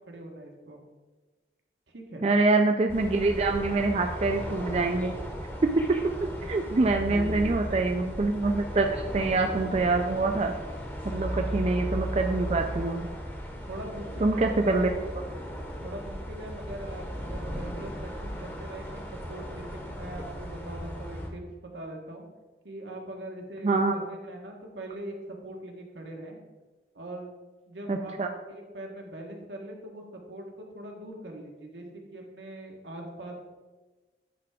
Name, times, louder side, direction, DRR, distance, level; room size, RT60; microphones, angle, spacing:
voice 1, 0.1-0.8 1.9-2.3 7.1-7.9 13.7-14.9 15.8-19.0 19.3-22.2 22.6-25.1 25.4-26.4 26.9-28.2 28.5-31.9 32.1-33.4, right 1 dB, 85° right, 1 dB, 1.3 m, -41 dB
voice 2, 2.2-5.1 5.6-6.0 6.4-10.5 11.0-13.1 14.2-14.9 23.6-23.9 27.9-28.3, right 3 dB, 35° right, 4 dB, 0.4 m, -25 dB
sound 1, 2.9-21.3, equal, 10° left, 0.8 m, -36 dB
9.5 x 3.4 x 4.9 m, 1.3 s
head